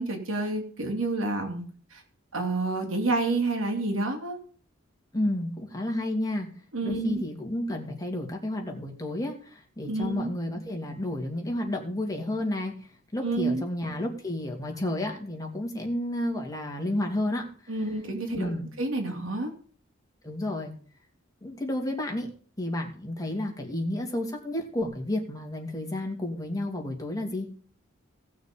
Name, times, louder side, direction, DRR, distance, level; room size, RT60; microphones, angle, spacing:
voice 1, 0.0-1.6 1.9-2.0 2.3-4.4 6.7-7.2 9.8-10.3 13.2-13.7 17.7-18.5 18.8-19.5, right 2 dB, 75° right, 3 dB, 3.1 m, -29 dB
voice 2, 5.1-6.5 6.8-17.5 18.4-18.7 20.2-20.7 21.4-22.3 22.6-27.5, left 1 dB, 20° left, 0 dB, 2.8 m, -31 dB
17.5 x 6.4 x 5.3 m, 0.44 s
head